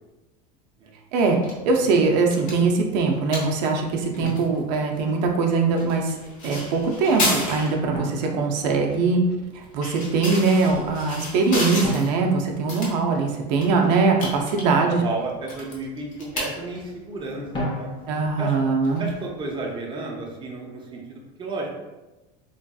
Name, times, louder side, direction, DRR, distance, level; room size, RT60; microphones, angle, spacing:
voice 1, 1.1-6.2 6.4-9.2 9.5-15.0 18.1-19.0, right 4 dB, 80° right, 1 dB, 0.5 m, -22 dB
sound 1, 1.2-19.6, left 1 dB, 40° left, 1.0 m, -35 dB
Drum, 1.8-2.0 4.2-5.4 7.9-9.3 11.8-13.5 17.5-18.5, left 1 dB, 20° left, 0.7 m, -34 dB
voice 2, 14.6-17.9 18.4-18.5 19.0-21.7, right 2 dB, 20° right, -1 dB, 0.6 m, -32 dB
3.1 x 2.6 x 2.3 m, 1.1 s
supercardioid pair, 120°, 21 cm